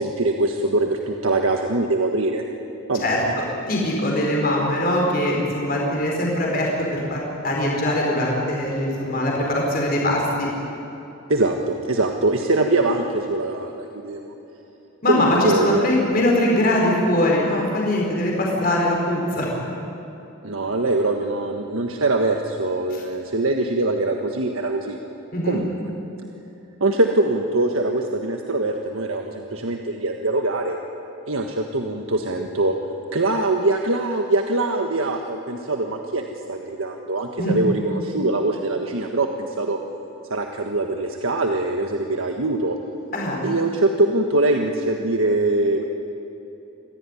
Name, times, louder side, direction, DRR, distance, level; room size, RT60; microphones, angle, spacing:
voice 1, 0.0-2.4 2.9-3.3 11.3-14.3 15.1-16.0 20.4-25.0 25.4-25.7 26.8-30.8 31.3-32.7 33.1-36.2 36.5-39.8 40.3-42.8 43.4-45.8, right 2 dB, 85° right, 3 dB, 1.5 m, -23 dB
voice 2, 3.0-10.5 15.0-19.5 25.3-25.6 37.4-37.6 43.1-43.4, left 1 dB, 45° left, -2 dB, 5.0 m, -22 dB
26.5 x 16.5 x 10.0 m, 3.0 s
head